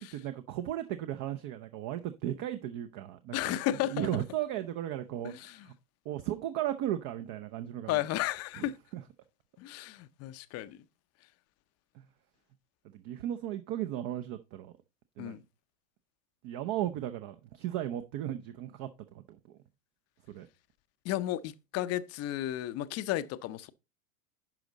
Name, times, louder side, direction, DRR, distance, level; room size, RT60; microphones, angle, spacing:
voice 1, 0.0-5.7 6.0-8.0 8.6-9.0 12.9-14.7 15.2-15.4 16.4-18.9 19.1-19.4 20.3-20.5, right 12 dB, 40° right, 0.7 m, -36 dB
voice 2, 3.3-4.2 5.2-5.6 7.9-8.7 9.6-10.8 15.2-15.4 21.0-23.7, left 14 dB, 35° left, 0.6 m, -33 dB
10.5 x 5.2 x 3.9 m
hypercardioid pair, 95°, 46 cm